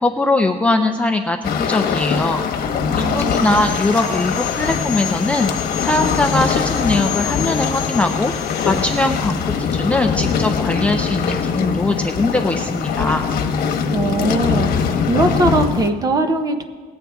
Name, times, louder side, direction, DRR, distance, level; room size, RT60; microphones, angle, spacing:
voice 1, 0.0-2.4 3.0-5.5 5.8-8.3 8.7-13.2, left 2 dB, 10° left, 3 dB, 0.4 m, -20 dB
sound 1, 1.4-15.9, left 6 dB, 80° left, 1.1 m, -22 dB
voice 2, 2.9-3.6 13.9-14.7 15.1-16.6, right 2 dB, 25° right, 7 dB, 0.8 m, -20 dB
Sawing, 3.3-9.3, left 10 dB, 55° left, 1.1 m, -31 dB
19.0 x 8.6 x 3.5 m, 1.5 s
cardioid pair, 175°, 16 cm